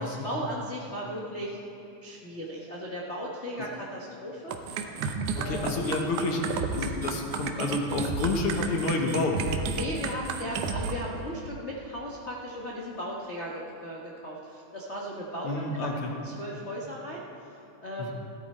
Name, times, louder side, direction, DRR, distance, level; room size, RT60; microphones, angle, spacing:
voice 1, 0.0-1.6 2.0-4.6 5.3-5.8 9.7-17.2 17.8-18.1, equal, 75° left, -3 dB, 0.6 m, -36 dB
sound 1, 4.5-10.9, right 5 dB, 90° right, 2.3 m, -32 dB
voice 2, 5.4-6.4 6.7-9.4 15.4-16.1 18.0-18.1, left 3 dB, 55° left, 2 dB, 1.8 m, -29 dB
17.0 x 11.5 x 4.4 m, 2.7 s
omnidirectional pair, 3.4 m